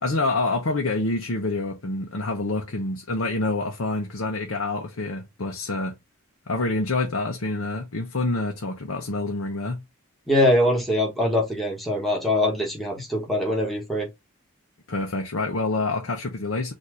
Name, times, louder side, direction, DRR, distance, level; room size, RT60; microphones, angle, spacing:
voice 1, 0.0-5.9 6.5-9.8 14.9-16.7, left 2 dB, 70° left, 0.8 m, -27 dB
voice 2, 10.3-14.1, left 1 dB, ahead, 1.3 m, -23 dB
4.2 x 2.7 x 4.8 m
head